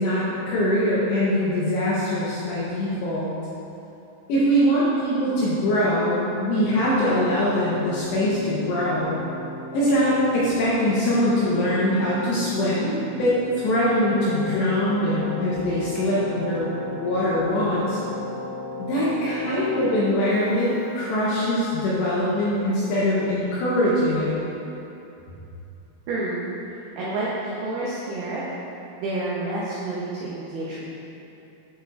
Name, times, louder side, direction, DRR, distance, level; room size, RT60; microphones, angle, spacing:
voice 1, 0.0-3.3 4.3-9.2 9.7-16.7 17.0-18.0 18.8-24.3, equal, 80° left, -8 dB, 2.6 m, -22 dB
Keyboard (musical), 6.5-21.6, left 2 dB, 65° right, 3.0 m, -37 dB
voice 2, 26.1-26.4 27.0-28.7 29.0-31.0, right 2 dB, 90° right, -7 dB, 2.3 m, -29 dB
10.5 x 5.9 x 2.5 m, 2.9 s
omnidirectional pair, 5.9 m